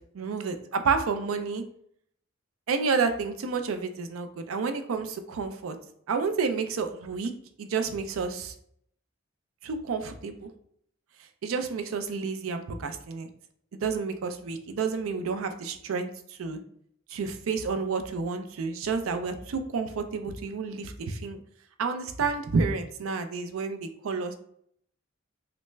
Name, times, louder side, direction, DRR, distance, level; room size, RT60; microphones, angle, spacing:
voice 1, 0.1-1.6 2.7-5.8 6.1-7.3 7.6-8.5 9.6-10.5 11.4-13.3 13.7-16.6 17.1-21.4 21.8-24.3, right 5 dB, 85° right, 8 dB, 0.4 m, -30 dB
3.3 x 2.0 x 3.2 m, 0.68 s
head